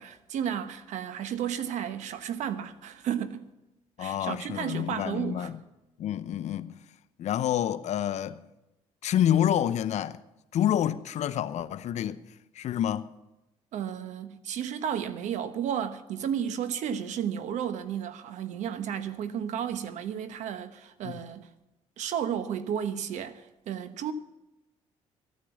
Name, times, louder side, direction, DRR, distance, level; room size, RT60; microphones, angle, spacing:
voice 1, 0.0-3.5 4.0-5.5 13.7-21.5 22.0-24.1, right 9 dB, 75° right, 1.1 m, -33 dB
voice 2, 4.0-5.6 6.0-6.7 7.2-8.4 9.0-10.2 10.5-12.2 12.5-13.1 21.0-21.2, left 10 dB, 65° left, 0.8 m, -28 dB
14.5 x 9.7 x 7.1 m
cardioid pair, 85°, 13 cm